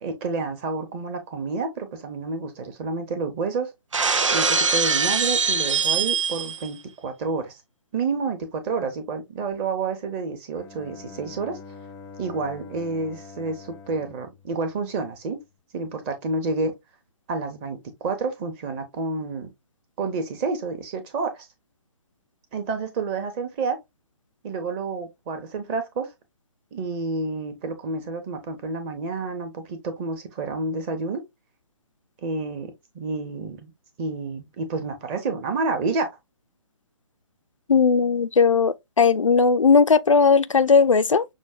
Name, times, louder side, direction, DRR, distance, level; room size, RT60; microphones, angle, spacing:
voice 1, 0.0-3.7 4.3-7.5 7.9-11.6 12.2-15.4 15.7-16.7 17.3-19.5 20.0-21.5 22.5-23.8 24.4-26.1 26.7-31.2 32.2-33.7 34.0-36.2, right 4 dB, 25° right, 0.8 m, -29 dB
Shatter, 3.9-6.7, right 5 dB, 80° right, 0.5 m, -22 dB
Bowed string instrument, 10.5-15.3, left 4 dB, 15° left, 0.5 m, -44 dB
voice 2, 37.7-41.3, left 5 dB, 90° left, 0.4 m, -17 dB
6.1 x 2.1 x 2.2 m
figure-of-eight pair, 135°, 16 cm